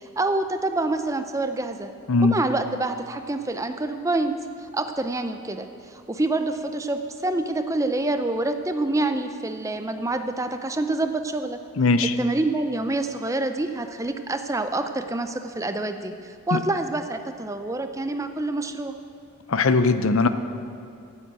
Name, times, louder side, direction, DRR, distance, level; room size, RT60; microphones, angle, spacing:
voice 1, 0.2-1.9 2.2-11.6 12.2-18.9, right 2 dB, 15° right, 8 dB, 0.5 m, -27 dB
voice 2, 11.8-12.1 16.5-16.6 19.5-20.3, left 3 dB, 75° left, 11 dB, 0.6 m, -19 dB
11.0 x 8.9 x 7.8 m, 2.5 s
head